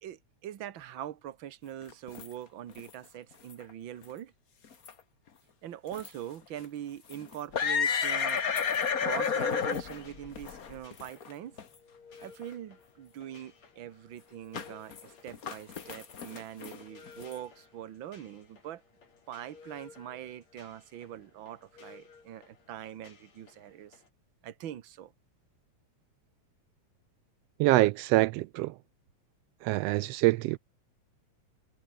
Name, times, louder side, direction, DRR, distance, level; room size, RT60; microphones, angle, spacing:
voice 1, 0.0-4.3 5.6-8.4 9.0-11.6 12.2-18.8 19.3-24.0 24.4-25.1, right 11 dB, 50° right, 1.7 m, -43 dB
sound 1, 1.8-2.3 2.7-2.9 3.5-3.6 4.0-4.1 4.6-5.0 5.9-6.1 6.6-6.7 7.1-11.3 11.6-11.7 12.4-12.5 14.5-15.0 15.3-17.4, left 6 dB, 40° left, 1.5 m, -31 dB
sound 2, 8.8-24.1, left 5 dB, 65° left, 5.3 m, -57 dB
voice 2, 27.6-28.7 29.6-30.6, right 19 dB, 85° right, 1.4 m, -25 dB
omnidirectional pair, 3.3 m